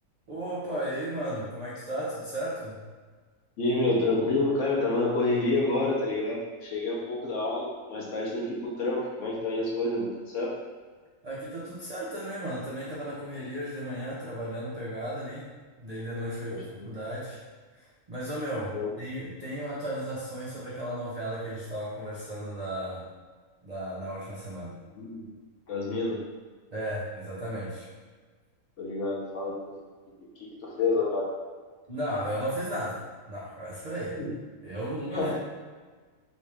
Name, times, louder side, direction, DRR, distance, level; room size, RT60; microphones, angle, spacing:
voice 1, 0.3-2.8 11.2-15.5 15.8-17.4 17.7-23.1 23.6-24.8 26.7-27.9 31.9-33.0 33.3-34.2 34.6-35.3, right 1 dB, 60° right, -7 dB, 0.4 m, -35 dB
voice 2, 3.6-10.5 16.5-16.9 18.7-18.9 25.0-25.3 25.7-26.2 28.8-29.6 30.4-31.3 34.2-34.3 35.1-35.3, left 2 dB, 60° left, -4 dB, 0.9 m, -28 dB
3.0 x 2.7 x 3.3 m, 1.4 s
omnidirectional pair, 1.6 m